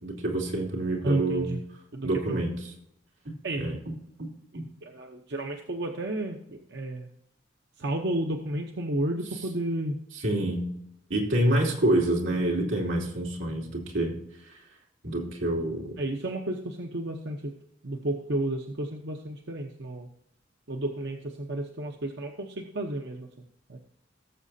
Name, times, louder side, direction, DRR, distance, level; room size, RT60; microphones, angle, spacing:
voice 1, 0.0-1.5 2.0-2.5 3.6-3.8 10.1-10.7 11.1-14.2 15.0-15.9, right 1 dB, 90° right, -2 dB, 2.9 m, -27 dB
voice 2, 1.0-1.6 1.9-2.4 3.4-3.8 4.5-7.1 7.8-10.0 16.0-17.5 17.8-20.1 20.7-23.3 23.7-23.8, right 1 dB, 65° right, 3 dB, 0.9 m, -32 dB
17.5 x 7.5 x 2.8 m, 0.77 s
head